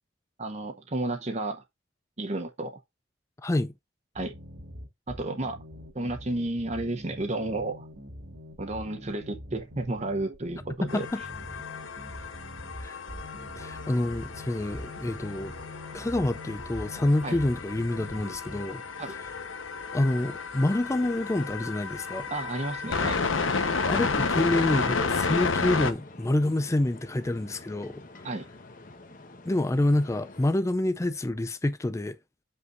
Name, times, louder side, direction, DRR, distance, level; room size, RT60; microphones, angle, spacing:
voice 1, 0.4-1.6 2.2-2.8 4.1-4.3 5.1-5.6 5.9-7.9 8.6-11.1 17.2-17.4 19.0-19.1 22.3-23.2 28.2-28.5, right 2 dB, 35° right, 0.8 m, -32 dB
voice 2, 3.4-3.7 10.9-11.2 12.8-13.0 13.6-15.5 15.9-18.8 19.9-22.3 23.9-28.2 29.4-32.2, left 1 dB, 15° left, 0.4 m, -27 dB
distorted square bassline, 4.2-18.6, equal, 80° right, 2.4 m, -44 dB
sound 1, 10.9-25.9, left 4 dB, 90° left, 1.0 m, -32 dB
sound 2, 25.5-30.5, left 2 dB, 45° left, 1.1 m, -48 dB
7.8 x 5.4 x 2.5 m
head